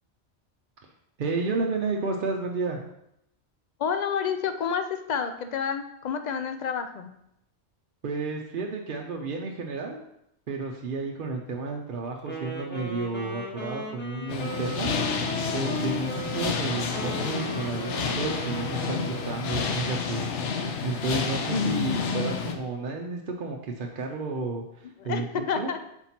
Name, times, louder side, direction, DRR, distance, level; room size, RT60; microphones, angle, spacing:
voice 1, 1.2-2.8 8.0-10.0 10.5-20.3 20.8-25.7, right 3 dB, 55° right, 1 dB, 0.7 m, -32 dB
voice 2, 3.8-7.1 21.5-22.6 25.0-25.8, left 6 dB, 55° left, 8 dB, 0.5 m, -29 dB
Wind instrument woodwind instrument, 12.2-19.4, equal, 10° left, 1.0 m, -37 dB
sound 1, 14.3-22.6, left 5 dB, 75° left, 1.0 m, -30 dB
4.4 x 4.3 x 5.8 m, 0.79 s
omnidirectional pair, 1.2 m